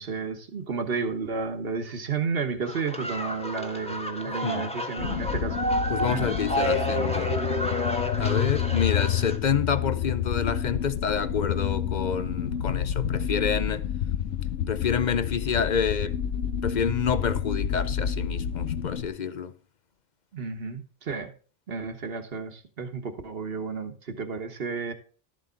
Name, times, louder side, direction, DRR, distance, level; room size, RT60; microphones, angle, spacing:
voice 1, 0.0-5.6 6.1-6.3 20.3-21.3 21.7-24.9, right 5 dB, 55° right, 1.5 m, -32 dB
sound 1, 2.7-9.4, equal, 5° left, 1.3 m, -30 dB
sound 2, 5.0-19.1, left 9 dB, 90° left, 1.1 m, -29 dB
voice 2, 5.9-7.3 8.2-13.9 14.7-16.2 16.6-19.5, left 6 dB, 45° left, 0.6 m, -28 dB
12.5 x 7.7 x 3.9 m
omnidirectional pair, 1.2 m